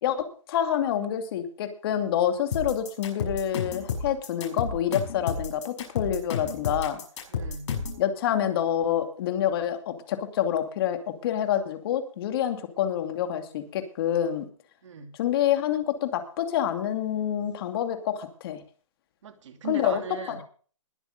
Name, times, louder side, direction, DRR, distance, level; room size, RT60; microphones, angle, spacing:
voice 1, 0.0-7.0 8.0-14.4 15.2-18.6 19.7-20.0 20.3-20.4, left 10 dB, 45° left, 2.5 m, -27 dB
sound 1, 2.5-8.0, left 5 dB, 60° left, 6.3 m, -31 dB
voice 2, 7.3-7.7 14.8-15.1 19.2-20.4, right 6 dB, 65° right, 2.6 m, -38 dB
20.5 x 7.1 x 5.3 m
hypercardioid pair, 150°, 17 cm